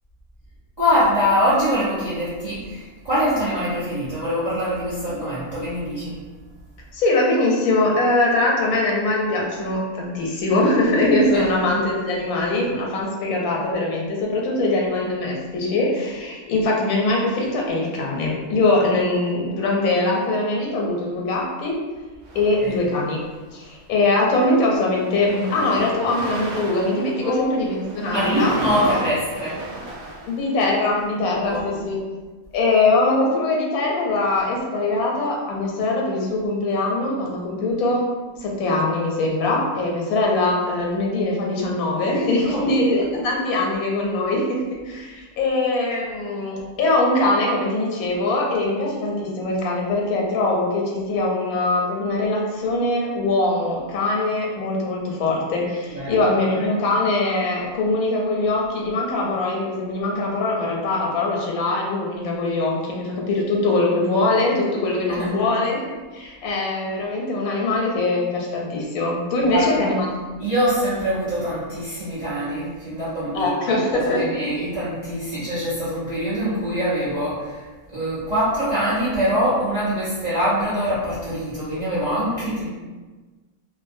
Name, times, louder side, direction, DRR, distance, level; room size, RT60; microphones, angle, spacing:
voice 1, 0.8-6.2 11.3-11.5 22.3-22.8 27.2-27.5 28.0-29.6 31.4-31.8 42.4-42.7 55.9-56.1 65.1-65.2 69.4-69.9 70.4-77.7 77.9-82.7, equal, 45° right, -11 dB, 0.6 m, -24 dB
voice 2, 6.9-21.8 22.3-23.2 23.5-29.0 30.3-32.0 32.5-38.1 38.4-70.1 73.3-74.6, left 2 dB, 90° left, -2 dB, 1.1 m, -22 dB
sound 1, 22.2-23.2 24.0-24.2 24.5-31.0, right 1 dB, 70° right, 0.8 m, -34 dB
2.5 x 2.0 x 2.5 m, 1.3 s
omnidirectional pair, 1.5 m